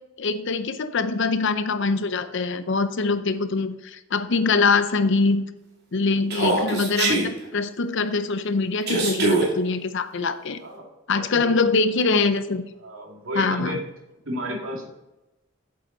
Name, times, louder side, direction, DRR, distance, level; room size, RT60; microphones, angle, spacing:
voice 1, 0.2-5.5 5.9-10.6 11.1-12.6 13.4-13.8, left 4 dB, 60° left, 11 dB, 0.6 m, -23 dB
Human voice, 6.3-7.3 8.9-9.5, right 2 dB, 50° right, 2.6 m, -22 dB
voice 2, 11.1-11.5 12.8-13.8 14.2-14.9, equal, 70° right, 0 dB, 2.3 m, -32 dB
8.4 x 7.7 x 4.0 m, 0.99 s
head